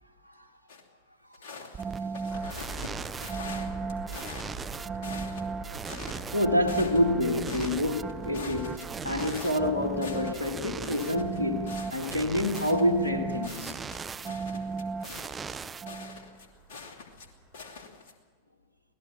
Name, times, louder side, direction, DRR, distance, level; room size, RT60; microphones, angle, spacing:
sound 1, 0.7-0.8 1.3-2.9 3.2-4.6 4.9-5.5 5.9-7.2 7.5-9.7 10.0-10.5 10.8-17.3 17.5-18.1, left 4 dB, 50° left, 2.6 m, -44 dB
sound 2, 1.7-16.4, right 5 dB, 15° right, 0.6 m, -36 dB
sound 3, 2.3-17.9, right 2 dB, ahead, 5.5 m, -46 dB
voice 1, 6.3-13.7, left 1 dB, 75° left, 1.9 m, -27 dB
25.0 x 17.5 x 7.1 m
figure-of-eight pair, 90°, 0 cm